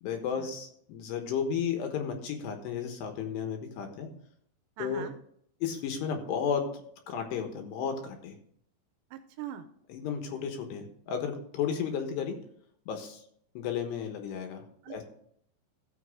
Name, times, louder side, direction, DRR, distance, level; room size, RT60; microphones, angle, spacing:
voice 1, 0.0-4.1 4.8-5.1 5.6-8.4 9.9-12.4 12.9-13.2 13.5-15.0, left 7 dB, 70° left, 4 dB, 3.2 m, -33 dB
voice 2, 4.8-5.1 9.1-9.6 14.9-15.0, right 10 dB, 80° right, 9 dB, 2.7 m, -41 dB
14.5 x 7.3 x 3.7 m, 0.65 s
omnidirectional pair, 5.4 m